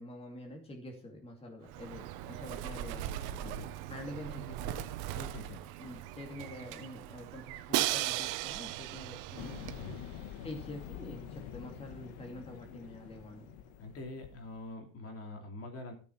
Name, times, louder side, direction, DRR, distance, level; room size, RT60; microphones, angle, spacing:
voice 1, 0.0-3.1 3.9-4.8 5.8-9.6 10.4-13.5, left 1 dB, 15° left, 1 dB, 2.5 m, -46 dB
Bird, 1.7-9.9, right 11 dB, 90° right, 1.2 m, -42 dB
voice 2, 3.4-3.8 5.2-5.6 9.8-10.0 12.7-12.8 13.8-15.9, left 2 dB, 40° left, 3 dB, 3.0 m, -45 dB
Crash cymbal, 7.7-9.7, right 17 dB, 60° right, 0.7 m, -33 dB
sound 1, 9.3-14.6, left 9 dB, 90° left, 1.6 m, -46 dB
13.5 x 6.9 x 5.7 m, 0.40 s
cardioid pair, 150°, 36 cm